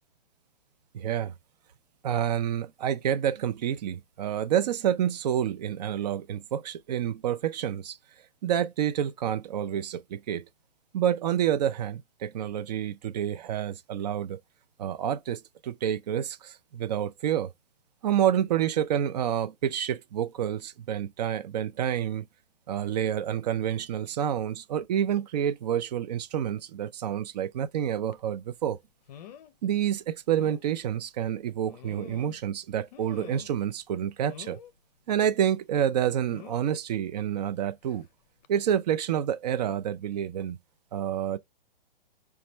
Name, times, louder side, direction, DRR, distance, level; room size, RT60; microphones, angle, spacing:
voice 1, 0.9-1.3 2.0-8.0 8.4-10.4 10.9-14.4 14.8-17.5 18.0-22.3 22.7-28.8 29.6-34.6 35.1-38.1 38.5-40.6 40.9-41.4, right 10 dB, 45° right, 0.5 m, -28 dB
sound 1, 28.1-28.3 29.1-29.5 29.9-30.0 30.4-30.6 31.6-32.5 32.9-33.6 34.3-34.7 36.3-36.7 37.9-38.1 38.4-38.5, left 10 dB, 45° left, 0.6 m, -47 dB
5.0 x 2.3 x 4.3 m
hypercardioid pair, 130°, 29 cm